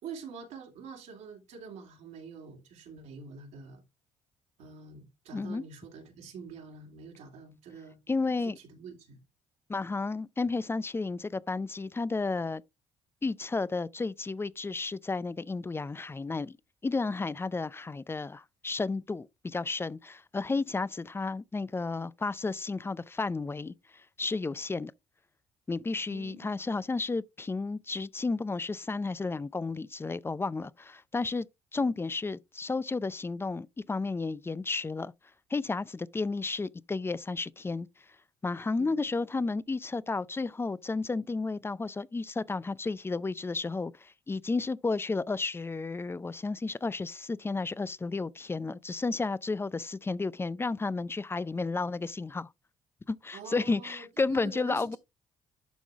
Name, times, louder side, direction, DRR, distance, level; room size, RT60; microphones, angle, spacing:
voice 1, 0.0-3.8 4.6-8.0 8.4-9.2 26.1-26.5 38.8-39.0 53.3-55.0, right 5 dB, 75° right, 2.6 m, -46 dB
voice 2, 5.3-5.6 8.1-8.6 9.7-12.6 13.2-16.6 16.8-24.9 25.7-31.5 31.7-35.1 35.5-37.9 38.4-52.5 53.1-55.0, left 3 dB, 20° left, 0.5 m, -32 dB
11.0 x 3.8 x 3.5 m
supercardioid pair, 60°, 12 cm